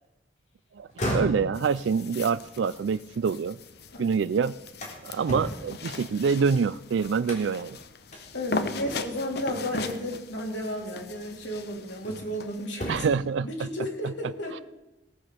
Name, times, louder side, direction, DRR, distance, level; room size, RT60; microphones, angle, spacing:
sound 1, 0.8-3.9 4.3-6.7 7.2-7.7 8.1-8.2 8.8-9.3 10.5-10.7 11.2-12.4 12.7-13.3, equal, 40° left, 3.4 m, -36 dB
voice 1, 0.8-3.6 4.0-4.5 5.0-7.8 12.9-13.7 14.0-14.1, right 5 dB, 80° right, 16 dB, 0.4 m, -26 dB
sound 2, 1.5-12.7, left 3 dB, 60° left, 0.9 m, -39 dB
voice 2, 8.3-13.1 13.4-14.6, equal, 85° left, 0 dB, 3.3 m, -33 dB
18.0 x 7.6 x 6.7 m, 0.98 s
head